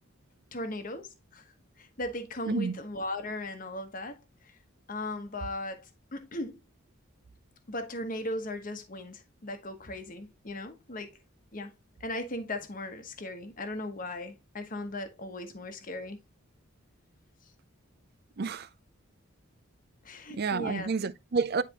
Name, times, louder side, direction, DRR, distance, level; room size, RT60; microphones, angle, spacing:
voice 1, 0.5-1.5 1.8-4.2 4.9-6.6 7.7-11.2 11.5-11.7 12.0-16.2 20.0-20.9, left 1 dB, 40° left, 1.1 m, -37 dB
voice 2, 2.5-2.8 18.4-18.7 20.3-21.6, right 4 dB, 45° right, 0.5 m, -29 dB
10.0 x 4.2 x 2.9 m
head